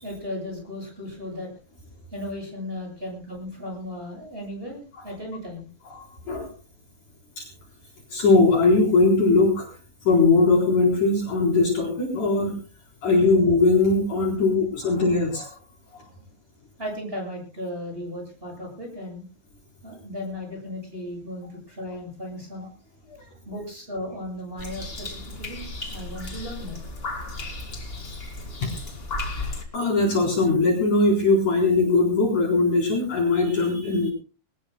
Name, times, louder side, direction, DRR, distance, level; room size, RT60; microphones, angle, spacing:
voice 1, 0.0-1.5 2.1-5.6 14.8-14.9 16.2-16.3 16.8-19.2 19.8-22.7 23.5-25.7 25.9-26.8, left 1 dB, 10° right, 0 dB, 7.6 m, -35 dB
voice 2, 5.9-6.5 7.4-7.5 8.1-9.7 10.1-12.6 13.0-15.5 28.6-28.7 29.7-34.1, left 3 dB, 45° left, -1 dB, 5.2 m, -20 dB
sound 1, 24.6-29.6, left 2 dB, 25° left, 1.2 m, -34 dB
22.5 x 19.5 x 2.2 m, 0.35 s
omnidirectional pair, 4.9 m